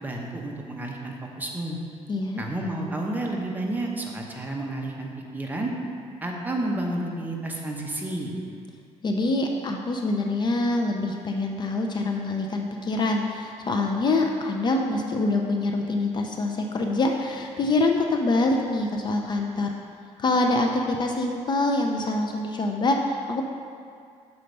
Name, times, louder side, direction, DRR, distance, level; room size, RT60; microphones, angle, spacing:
voice 1, 0.0-1.8 2.4-5.7 6.2-8.3, right 1 dB, 15° right, -1 dB, 0.9 m, -31 dB
voice 2, 2.1-2.5 9.0-19.7 20.2-23.4, left 2 dB, 35° left, 2 dB, 0.5 m, -25 dB
6.6 x 4.4 x 5.3 m, 2.3 s
cardioid pair, 120°, 12 cm